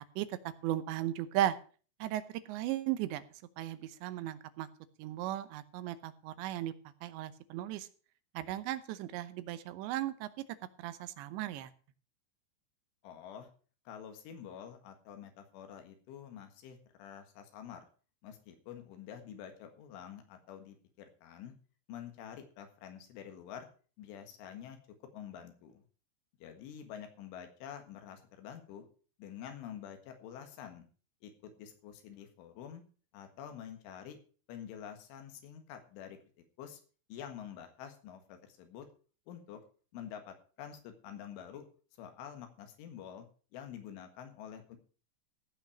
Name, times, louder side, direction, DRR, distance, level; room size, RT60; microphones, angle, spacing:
voice 1, 0.6-1.6 2.0-2.2 2.5-3.2 3.6-4.7 5.0-6.7 7.0-7.9 8.3-10.3 10.8-11.7, right 13 dB, 75° right, 13 dB, 3.0 m, -36 dB
voice 2, 13.0-13.5 13.9-17.9 18.2-21.5 21.9-23.7 24.0-24.8 25.1-25.8 26.4-28.9 29.2-30.9 31.2-32.8 33.1-34.2 34.5-36.2 36.6-36.8 37.1-38.9 39.3-39.6 39.9-41.7 42.0-43.3 43.5-44.8, left 9 dB, 90° left, 6 dB, 4.2 m, -48 dB
16.0 x 5.9 x 7.1 m, 0.39 s
omnidirectional pair, 5.4 m